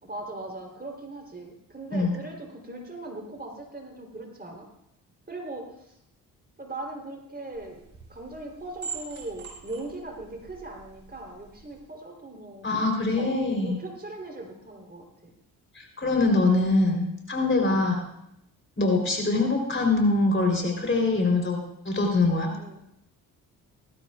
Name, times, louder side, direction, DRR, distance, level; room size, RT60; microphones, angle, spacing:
voice 1, 0.0-4.6 5.3-6.0 6.6-7.8 8.1-12.7 13.1-15.3 17.6-17.8 22.6-22.8, right 2 dB, 20° right, 1 dB, 3.5 m, -39 dB
sound 1, 7.5-11.8, right 5 dB, 40° right, 5.1 m, -44 dB
voice 2, 12.6-13.8 15.8-18.0 18.8-21.6 21.9-22.5, left 2 dB, 25° left, 2 dB, 3.7 m, -23 dB
18.5 x 13.5 x 2.4 m, 0.80 s
hypercardioid pair, 45°, 45 cm